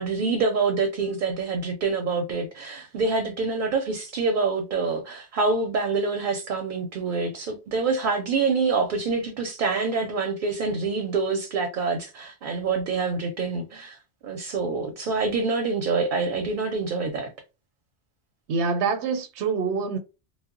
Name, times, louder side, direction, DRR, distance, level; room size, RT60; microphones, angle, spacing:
voice 1, 0.0-17.3, right 4 dB, 60° right, 0.6 m, -26 dB
voice 2, 18.5-20.0, right 5 dB, 85° right, 0.9 m, -25 dB
2.0 x 2.0 x 3.6 m
omnidirectional pair, 1.1 m